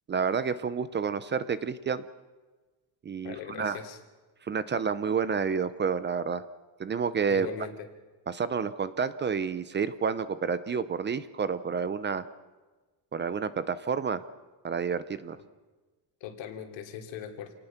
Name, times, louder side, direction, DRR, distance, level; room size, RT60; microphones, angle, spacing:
voice 1, 0.1-2.0 3.0-3.8 4.4-6.4 6.8-7.5 8.3-12.2 13.1-14.2 14.6-15.4, right 6 dB, 25° right, 14 dB, 0.7 m, -29 dB
voice 2, 3.2-4.0 7.3-7.9 16.2-17.5, left 8 dB, 80° left, 4 dB, 3.1 m, -40 dB
27.5 x 19.0 x 5.9 m, 1.3 s
cardioid pair, 150°, 45 cm